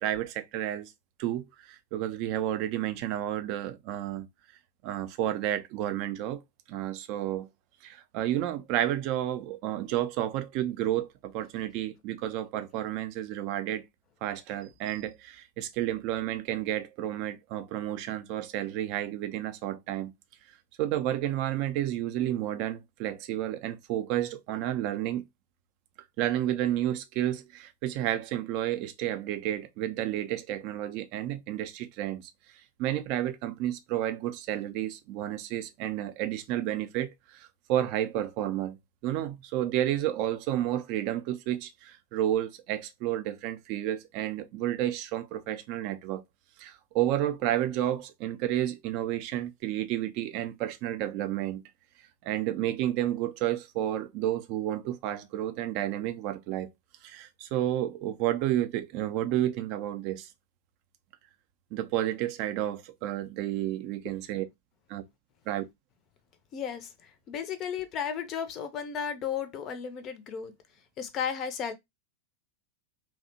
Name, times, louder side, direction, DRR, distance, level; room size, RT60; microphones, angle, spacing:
voice 1, 0.0-0.9 1.2-4.3 4.8-6.4 6.7-7.5 7.8-13.8 14.2-20.1 20.8-25.2 26.2-32.3 32.8-38.8 39.0-46.2 46.6-51.6 52.2-56.7 57.0-60.3 61.7-64.4 64.9-65.0 65.5-65.6, right 12 dB, 45° right, 0.4 m, -31 dB
voice 2, 66.5-70.5 71.0-71.7, left 7 dB, 30° left, 0.4 m, -34 dB
2.7 x 2.0 x 2.6 m
figure-of-eight pair, 90°, 0 cm